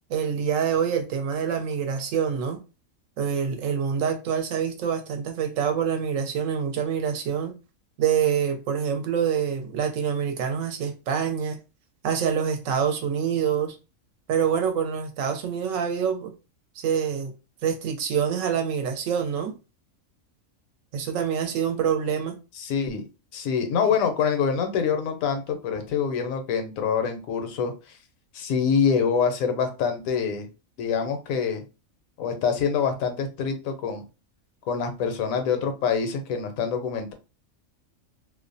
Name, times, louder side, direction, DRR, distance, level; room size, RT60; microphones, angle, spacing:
voice 1, 0.1-2.6 3.2-7.6 8.0-11.6 12.0-13.8 14.3-16.3 16.8-17.3 17.6-19.5 20.9-22.4, right 7 dB, 75° right, 0.9 m, -26 dB
voice 2, 22.6-23.0 23.3-28.0 28.3-30.5 30.8-31.6 32.2-34.0 34.7-37.1, left 6 dB, 80° left, 1.0 m, -25 dB
2.5 x 2.0 x 2.5 m
omnidirectional pair, 1.4 m